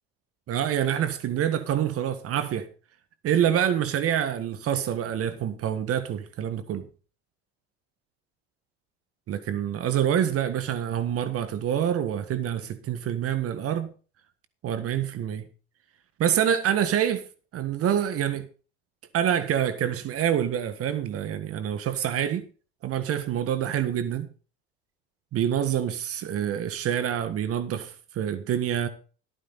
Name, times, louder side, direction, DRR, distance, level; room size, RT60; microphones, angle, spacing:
voice 1, 0.5-2.7 3.2-6.9 9.3-13.9 14.6-15.5 16.2-17.2 17.5-18.5 19.1-22.4 22.8-24.3 25.3-28.9, right 9 dB, 45° right, 1.5 m, -26 dB
14.5 x 9.6 x 4.1 m
supercardioid pair, 90°, 31 cm